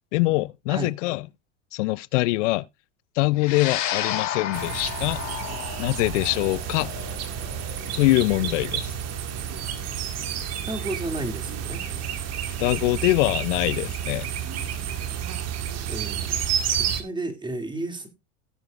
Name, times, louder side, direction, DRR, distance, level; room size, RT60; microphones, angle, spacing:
voice 1, 0.1-1.2 1.7-2.6 3.2-5.2 5.8-6.9 7.9-8.9 12.6-14.3, left 20 dB, 75° left, 0.5 m, -23 dB
sound 1, 3.4-11.9, left 11 dB, 50° left, 2.8 m, -34 dB
sound 2, 4.5-17.0, right 9 dB, 45° right, 1.7 m, -30 dB
voice 2, 10.7-11.8 15.9-16.4 16.8-18.1, right 2 dB, 10° right, 2.3 m, -32 dB
17.5 x 7.8 x 2.4 m
hypercardioid pair, 105°, 36 cm